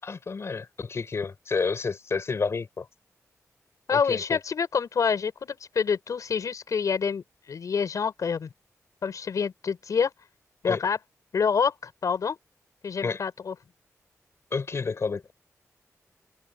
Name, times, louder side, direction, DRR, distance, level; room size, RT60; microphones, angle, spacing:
voice 1, 0.0-2.9 3.9-4.4 10.7-10.8 13.0-13.2 14.5-15.3, left 4 dB, 50° left, 6.7 m, -30 dB
voice 2, 3.9-8.5 9.0-10.1 10.6-11.0 11.3-12.4 12.8-13.5, left 6 dB, 70° left, 7.4 m, -27 dB
wide cardioid pair, 110°, 6 cm